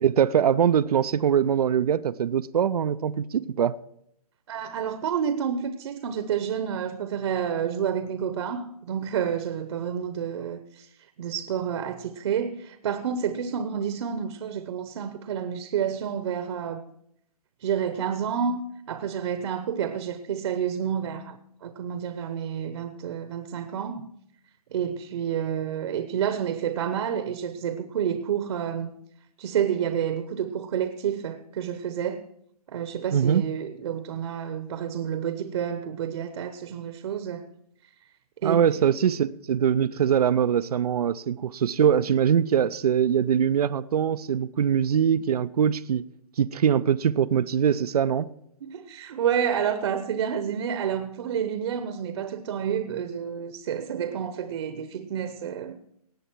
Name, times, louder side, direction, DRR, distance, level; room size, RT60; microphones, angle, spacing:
voice 1, 0.0-3.7 33.1-33.4 38.4-46.0 46.4-48.3, right 8 dB, 70° right, 0.5 m, -22 dB
voice 2, 4.5-10.9 11.2-16.8 17.6-24.1 24.7-29.0 29.4-32.2 32.7-37.5 38.4-38.8 39.0-39.2 48.6-55.8, right 8 dB, 50° right, 0.9 m, -29 dB
18.0 x 8.0 x 4.5 m
hypercardioid pair, 150°, 20 cm